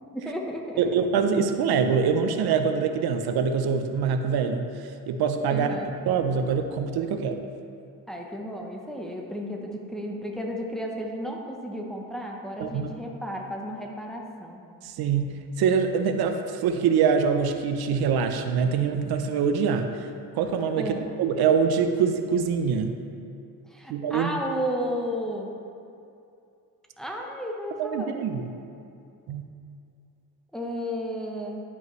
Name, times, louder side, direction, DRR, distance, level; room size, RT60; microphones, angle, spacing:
voice 1, 0.1-1.0 5.5-5.9 8.1-14.6 20.8-21.1 23.7-25.5 27.0-28.2 30.5-31.6, equal, ahead, 0 dB, 0.8 m, -33 dB
voice 2, 0.8-5.8 6.1-7.4 12.6-12.9 14.8-20.1 20.3-23.0 23.9-24.3 27.8-28.5 29.3-29.4, right 6 dB, 80° right, 7 dB, 0.6 m, -24 dB
11.0 x 5.4 x 3.1 m, 2.5 s
cardioid pair, 110°, 37 cm